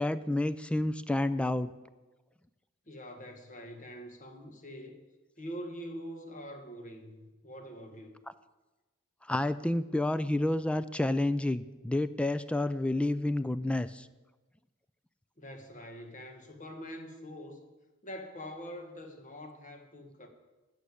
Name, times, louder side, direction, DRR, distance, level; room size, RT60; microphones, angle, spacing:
voice 1, 0.0-1.7 9.2-14.1, left 1 dB, 5° left, 14 dB, 0.3 m, -29 dB
voice 2, 2.9-5.0 5.4-8.2 15.4-17.7 18.0-20.3, equal, 35° left, 5 dB, 1.5 m, -44 dB
11.5 x 6.7 x 8.4 m, 1.2 s
head